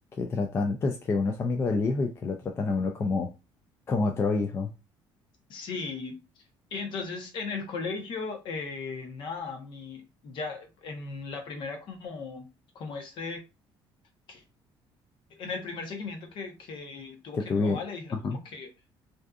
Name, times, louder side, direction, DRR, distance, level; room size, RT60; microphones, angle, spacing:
voice 1, 0.2-3.3 3.9-4.7 17.3-17.8 18.1-18.4, left 3 dB, 30° left, 0.3 m, -27 dB
voice 2, 5.5-6.2 6.7-12.5 12.7-13.4 14.3-14.4 15.4-18.7, left 4 dB, 55° left, 0.8 m, -37 dB
2.6 x 2.4 x 2.3 m
cardioid pair, 150°, 9 cm